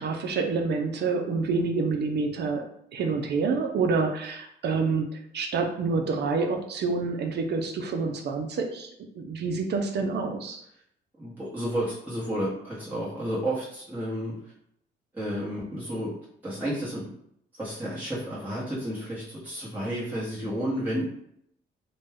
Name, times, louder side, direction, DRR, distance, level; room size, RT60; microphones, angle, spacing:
voice 1, 0.0-2.6 2.9-10.6, right 4 dB, 60° right, 3 dB, 0.5 m, -28 dB
voice 2, 11.2-14.3 15.1-16.1 16.4-17.0 17.6-21.0, equal, 10° right, -9 dB, 1.1 m, -31 dB
2.5 x 2.2 x 3.4 m, 0.71 s
cardioid pair, 90°, 20 cm